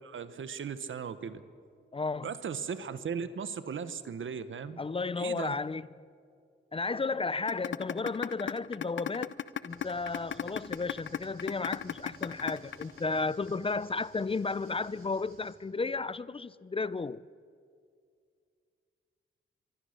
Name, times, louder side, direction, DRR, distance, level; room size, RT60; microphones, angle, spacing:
voice 1, 0.0-1.4 2.2-4.8 5.2-5.6, right 6 dB, 70° right, 1.2 m, -37 dB
voice 2, 1.9-2.3 4.8-6.0 6.7-9.3 9.6-17.2, left 4 dB, 25° left, 0.5 m, -33 dB
sound 1, 7.5-13.5, left 9 dB, 65° left, 0.7 m, -34 dB
sound 2, 9.7-15.5, right 3 dB, 85° right, 6.3 m, -57 dB
24.5 x 24.0 x 6.6 m
cardioid pair, 95°, 21 cm